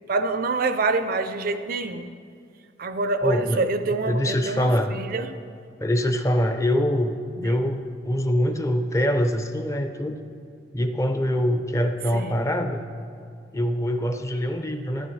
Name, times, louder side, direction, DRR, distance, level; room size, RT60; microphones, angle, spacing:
voice 1, 0.1-2.1 2.8-5.4 7.4-7.6 12.1-12.4, right 3 dB, 50° right, 10 dB, 0.4 m, -26 dB
voice 2, 3.2-3.7 4.1-4.9 5.8-10.2 10.7-12.9 13.5-15.1, equal, 15° left, 7 dB, 0.5 m, -24 dB
12.5 x 9.7 x 3.2 m, 2.3 s
head